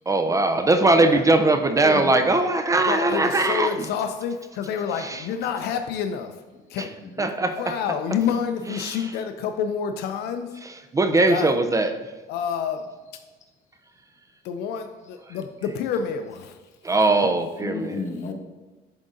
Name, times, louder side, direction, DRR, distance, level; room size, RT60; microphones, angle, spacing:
voice 1, 0.1-3.9 5.0-5.2 6.8-6.9 7.2-7.7 8.7-9.1 10.6-12.1 16.8-18.0, right 2 dB, 20° right, 7 dB, 0.4 m, -21 dB
voice 2, 1.8-2.2 6.8-7.1 17.6-18.3, left 3 dB, 45° left, 0 dB, 1.3 m, -31 dB
voice 3, 2.8-6.4 6.7-6.9 7.2-7.3 7.5-10.6 11.1-11.6 12.3-12.9 14.4-16.6, left 7 dB, 80° left, 7 dB, 0.5 m, -28 dB
10.5 x 3.7 x 2.5 m, 1.2 s
cardioid pair, 110°, 17 cm